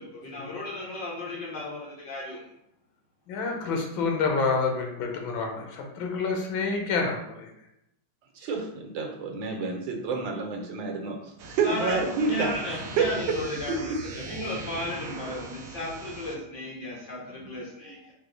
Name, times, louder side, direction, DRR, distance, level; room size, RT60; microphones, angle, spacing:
voice 1, 0.0-2.4 11.6-18.1, left 2 dB, 65° left, -5 dB, 1.7 m, -35 dB
voice 2, 3.3-7.5, left 4 dB, 80° left, 2 dB, 1.6 m, -28 dB
voice 3, 8.4-11.2 11.4-13.4 13.7-14.0, right 4 dB, 75° right, 1 dB, 1.5 m, -29 dB
sound 1, 11.4-16.4, right 3 dB, 90° right, 1.4 m, -40 dB
4.9 x 2.2 x 3.9 m, 0.82 s
omnidirectional pair, 2.1 m